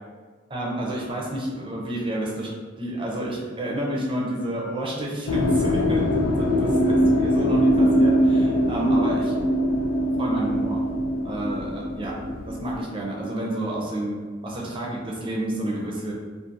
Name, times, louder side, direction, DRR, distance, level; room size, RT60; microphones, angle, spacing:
voice 1, 0.5-2.5 2.8-6.0 6.6-9.4 9.7-9.8 10.0-10.8 11.2-12.1 12.5-16.1, right 1 dB, 25° right, -3 dB, 0.5 m, -29 dB
sound 1, 5.3-12.8, equal, 85° left, 0.4 m, -22 dB
2.4 x 2.4 x 2.8 m, 1.5 s
head